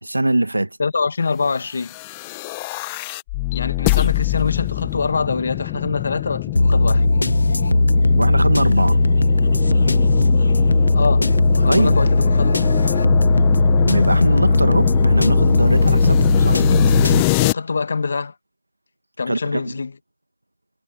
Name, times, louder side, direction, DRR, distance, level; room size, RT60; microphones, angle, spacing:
voice 1, 0.0-0.8 8.1-9.0 11.7-11.9 13.8-16.6 19.3-19.7, right 1 dB, 80° right, 1.6 m, -22 dB
voice 2, 0.8-1.9 3.5-7.0 10.9-11.3 11.6-12.5 17.3-18.3 19.2-19.9, left 4 dB, 35° left, 1.5 m, -24 dB
sound 1, 1.8-17.5, left 23 dB, 10° left, 0.8 m, -24 dB
sound 2, 6.6-17.2, left 2 dB, 65° left, 0.4 m, -17 dB
figure-of-eight pair, 170°, 0 cm